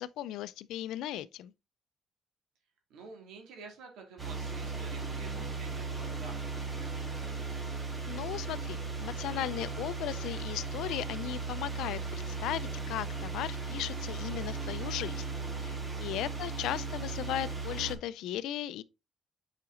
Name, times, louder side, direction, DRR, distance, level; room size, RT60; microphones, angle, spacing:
voice 1, 0.0-1.5 8.0-12.0 12.3-15.2 15.6-18.8, left 12 dB, 90° left, 0.4 m, -36 dB
voice 2, 2.9-7.1 16.1-16.6, right 4 dB, 90° right, 2.4 m, -50 dB
sound 1, 4.2-18.0, right 4 dB, 20° right, 2.1 m, -37 dB
5.6 x 5.1 x 3.7 m
cardioid pair, 90°, 0 cm